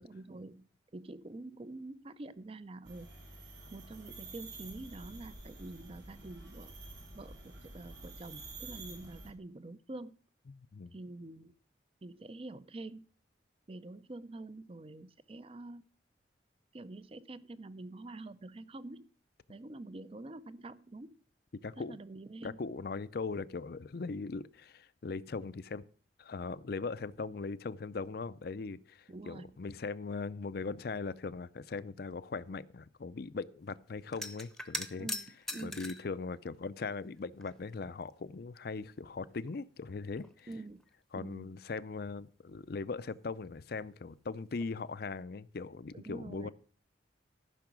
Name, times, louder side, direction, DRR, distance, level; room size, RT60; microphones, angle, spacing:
voice 1, 0.0-3.1 3.7-6.7 7.1-10.1 10.9-11.5 12.0-13.0 13.7-15.8 16.7-19.1 19.5-21.2 21.8-22.6 29.1-29.6 35.0-35.9 40.5-40.8 41.1-41.6 45.9-46.5, right 2 dB, 30° right, 0.5 m, -46 dB
sound 1, 2.9-9.3, right 2 dB, 85° right, 3.8 m, -49 dB
voice 2, 10.5-10.9 21.6-22.0 22.4-25.9 26.2-35.1 35.6-40.5 41.1-46.5, left 4 dB, 55° left, 0.5 m, -40 dB
sound 2, 34.1-36.1 37.0-37.8 38.1-38.2 39.5-39.6 39.9-40.9 44.5-44.7 45.0-45.2, left 1 dB, 5° left, 0.8 m, -42 dB
14.0 x 5.9 x 6.1 m
head